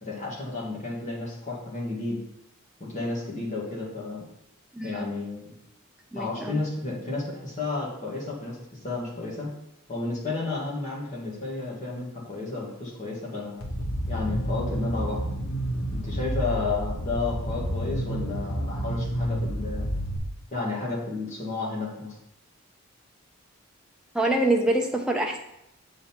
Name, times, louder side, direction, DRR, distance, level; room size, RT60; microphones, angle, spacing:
voice 1, 0.0-2.2 2.9-4.2 4.8-5.5 6.1-9.5 9.9-13.6 14.1-15.3 15.9-19.9 20.5-22.2, left 3 dB, 35° left, -4 dB, 1.8 m, -32 dB
voice 2, 4.7-5.1 6.1-6.6 24.1-25.4, right 1 dB, 5° right, 1 dB, 0.7 m, -25 dB
sound 1, 13.6-20.2, right 1 dB, 85° left, 1.1 m, -29 dB
7.7 x 3.8 x 4.4 m, 0.82 s
head